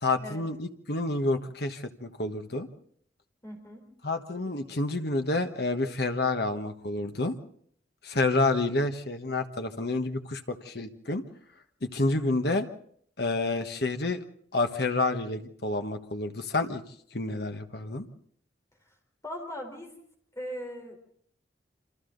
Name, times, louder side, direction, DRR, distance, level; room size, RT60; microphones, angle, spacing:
voice 1, 0.0-2.7 4.0-7.3 8.0-11.2 11.8-12.7 13.2-14.2 14.5-16.8 17.1-18.1, left 2 dB, 60° left, 6 dB, 1.4 m, -29 dB
voice 2, 3.4-3.9 19.2-20.0 20.3-21.0, equal, 15° left, 2 dB, 4.4 m, -39 dB
28.0 x 26.5 x 4.0 m, 0.65 s
head